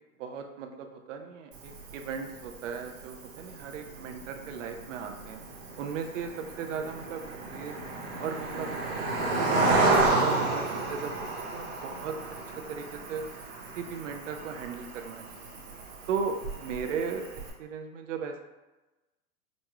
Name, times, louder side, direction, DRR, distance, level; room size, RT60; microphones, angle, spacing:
voice 1, 0.2-5.4 5.8-6.3 6.6-7.7 8.2-9.1 9.4-11.1 11.5-12.1 12.7-13.2 13.8-15.3 16.1-17.2 17.6-18.4, right 6 dB, 60° right, 5 dB, 0.6 m, -36 dB
Cricket, 1.5-17.5, right 2 dB, 40° right, 0.9 m, -32 dB
5.2 x 2.3 x 3.0 m, 1.1 s
supercardioid pair, 160°, 43 cm